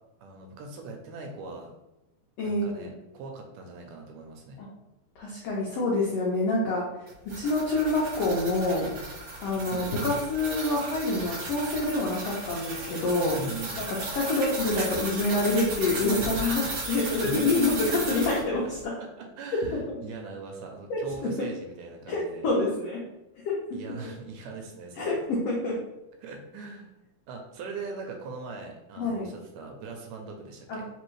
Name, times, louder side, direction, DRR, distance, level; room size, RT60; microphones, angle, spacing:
voice 1, 0.2-1.7 2.4-4.6 9.7-9.9 13.3-13.9 16.9-17.8 19.0-22.5 23.7-25.2 26.2-26.9 27.3-30.9, right 3 dB, 80° right, 3 dB, 2.0 m, -41 dB
voice 2, 2.4-2.9 4.6-4.7 5.2-6.8 7.3-8.9 9.4-13.4 13.8-19.0 19.9-20.0 20.9-21.5 22.1-23.0 23.4-23.6 25.0-25.8 29.0-29.3 30.7-30.8, left 2 dB, 85° left, -3 dB, 1.3 m, -27 dB
sound 1, 7.1-18.4, right 2 dB, 55° right, 1.8 m, -35 dB
4.6 x 3.4 x 3.1 m, 0.96 s
omnidirectional pair, 3.9 m